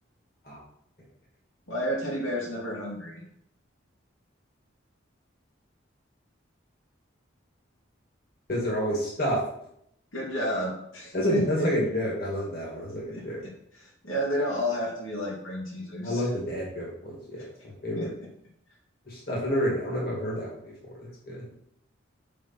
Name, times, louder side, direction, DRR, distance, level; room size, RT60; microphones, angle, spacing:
voice 1, 1.7-3.2 10.1-11.7 13.1-16.3 17.4-17.5 18.0-18.3, equal, 80° left, -3 dB, 2.4 m, -32 dB
voice 2, 8.5-9.4 11.1-13.4 16.0-18.1 19.1-20.5 21.0-21.5, equal, 50° left, -4 dB, 2.1 m, -29 dB
5.4 x 5.0 x 5.8 m, 0.73 s
head